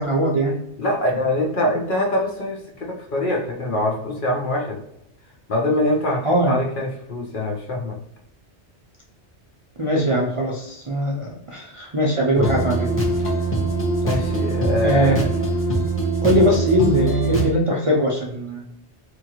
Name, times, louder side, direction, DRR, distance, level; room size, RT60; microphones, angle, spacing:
voice 1, 0.0-0.6 6.2-6.6 9.8-12.9 14.8-15.3 16.2-18.6, right 1 dB, 45° right, -3 dB, 0.4 m, -21 dB
voice 2, 0.8-4.8 5.5-8.0 14.0-15.2 16.4-16.5, left 1 dB, 55° left, 0 dB, 0.8 m, -24 dB
sound 1, 12.4-17.5, right 2 dB, 15° left, 0.7 m, -22 dB
2.9 x 2.4 x 2.8 m, 0.79 s
omnidirectional pair, 1.2 m